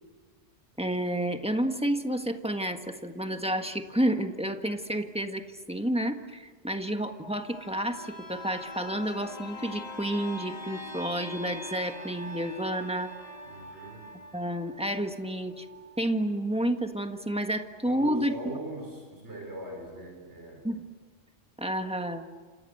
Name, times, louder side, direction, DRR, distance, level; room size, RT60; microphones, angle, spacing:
voice 1, 0.8-13.1 14.3-15.6 16.0-18.6 20.6-20.8 21.6-22.3, right 1 dB, 5° right, 6 dB, 1.5 m, -30 dB
sound 1, 7.4-16.9 17.3-17.4, left 1 dB, 35° left, 2.7 m, -43 dB
voice 2, 13.4-14.1 17.8-20.7, right 1 dB, 70° right, 2 dB, 4.8 m, -41 dB
27.5 x 27.5 x 7.9 m, 1.5 s
omnidirectional pair, 1.2 m